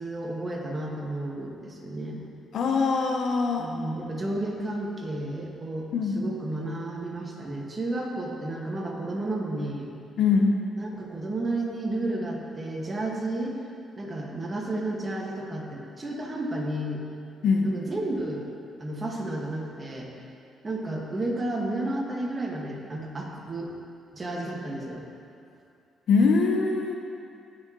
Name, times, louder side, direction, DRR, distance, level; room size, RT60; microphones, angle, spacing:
voice 1, 0.0-2.2 3.6-5.9 6.2-9.9 10.8-13.6 14.0-17.0 17.6-18.5 18.8-20.1 20.6-23.7 24.1-25.1, right 1 dB, 30° right, -2 dB, 1.8 m, -32 dB
voice 2, 2.5-3.7 5.9-6.1 10.2-10.6 17.4-17.7 26.1-26.9, left 4 dB, 70° left, 2 dB, 0.9 m, -22 dB
16.5 x 6.3 x 3.1 m, 2.5 s
cardioid pair, 90°, 0 cm